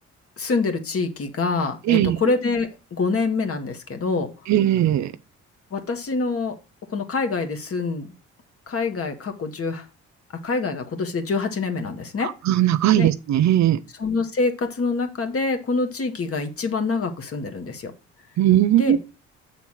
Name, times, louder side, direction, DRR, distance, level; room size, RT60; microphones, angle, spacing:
voice 1, 0.4-4.3 5.7-6.6 6.9-8.1 8.7-9.9 10.4-12.3 13.0-13.1 14.0-17.9 18.7-19.0, left 4 dB, 50° left, 1.6 m, -25 dB
voice 2, 1.9-2.2 4.5-5.1 12.5-13.8 18.4-19.0, right 12 dB, 65° right, 0.5 m, -18 dB
7.2 x 3.8 x 6.2 m
cardioid pair, 90°, 30 cm